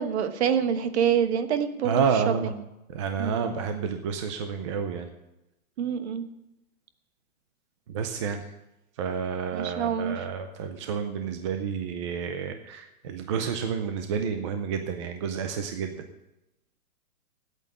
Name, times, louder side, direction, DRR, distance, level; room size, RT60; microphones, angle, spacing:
voice 1, 0.0-2.5 3.2-3.4 5.8-6.2 9.5-10.2, right 8 dB, 50° right, 10 dB, 1.2 m, -26 dB
voice 2, 1.8-2.5 2.9-5.1 7.9-8.5 9.0-15.9, right 6 dB, 20° right, 6 dB, 0.5 m, -29 dB
9.0 x 8.8 x 9.5 m, 0.91 s
hypercardioid pair, 160°, 42 cm